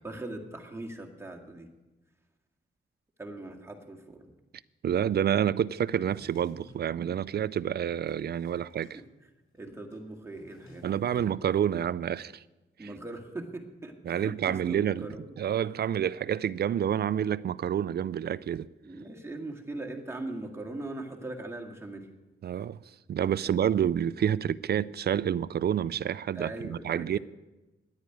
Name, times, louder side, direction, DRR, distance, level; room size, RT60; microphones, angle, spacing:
voice 1, 0.0-1.7 3.2-4.3 8.5-8.6 8.9-9.0 9.5-11.3 12.8-15.4 18.8-22.1 23.4-23.6 26.4-27.2, right 2 dB, 10° right, 2.0 m, -40 dB
voice 2, 4.8-9.0 10.8-12.4 12.8-12.9 14.1-15.1 15.4-18.7 22.4-22.8 23.1-27.2, right 9 dB, 50° right, 0.4 m, -28 dB
Drawer open or close, 5.8-6.9 7.5-9.0 9.2-9.3 9.5-11.3, left 2 dB, 75° left, 5.3 m, -55 dB
10.5 x 9.7 x 9.2 m
wide cardioid pair, 120°, 21 cm